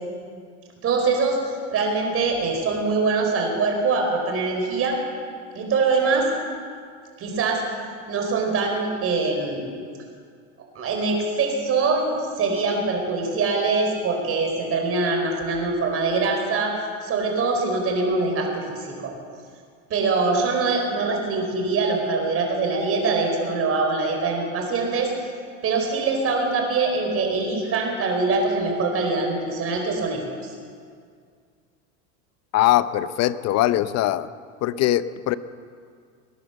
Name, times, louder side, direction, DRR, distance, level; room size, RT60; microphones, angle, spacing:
voice 1, 0.8-5.0 5.5-6.3 7.2-7.6 8.1-9.7 10.7-16.7 17.0-19.1 19.9-25.1 25.6-30.5, right 3 dB, 40° right, 2 dB, 4.6 m, -23 dB
voice 2, 32.5-34.3 34.6-35.4, left 14 dB, 45° left, 14 dB, 0.8 m, -21 dB
20.0 x 10.0 x 7.0 m, 2.1 s
supercardioid pair, 115°, 36 cm